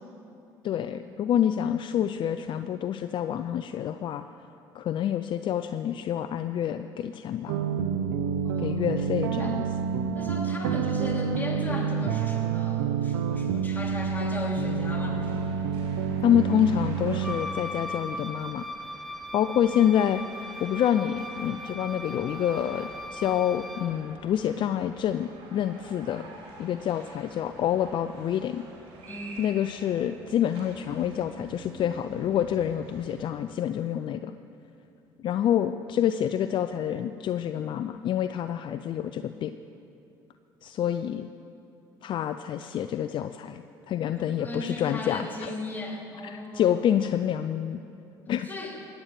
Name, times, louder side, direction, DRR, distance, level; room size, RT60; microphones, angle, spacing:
voice 1, 0.6-4.2 4.7-7.6 8.6-9.6 16.2-18.6 19.3-20.2 20.6-26.3 26.6-28.6 29.4-34.3 35.2-39.5 40.6-41.3 42.0-45.5 46.2-47.8 48.3-48.5, left 10 dB, 55° left, 10 dB, 0.5 m, -27 dB
sound 1, 7.5-17.3, right 6 dB, 90° right, 0.7 m, -28 dB
voice 2, 8.4-8.9 9.4-9.6 10.1-15.5 29.0-29.5 44.2-46.8 48.4-48.8, left 1 dB, 20° left, -2 dB, 3.7 m, -37 dB
sound 2, 14.2-33.2, right 2 dB, 65° right, 3.1 m, -48 dB
Wind instrument woodwind instrument, 17.2-24.0, left 1 dB, ahead, 1.0 m, -38 dB
17.0 x 10.5 x 6.7 m, 2.7 s
supercardioid pair, 70°, 10 cm